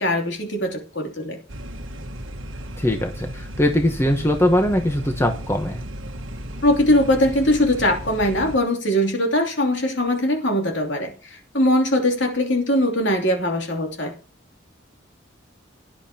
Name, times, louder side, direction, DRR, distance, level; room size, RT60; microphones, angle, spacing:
voice 1, 0.0-1.4 6.6-14.1, left 1 dB, 65° left, 3 dB, 2.9 m, -21 dB
sound 1, 1.5-8.6, equal, 85° right, 1.5 m, -35 dB
voice 2, 2.8-5.8, left 1 dB, 15° left, 4 dB, 1.1 m, -21 dB
16.5 x 10.5 x 2.9 m, 0.36 s
head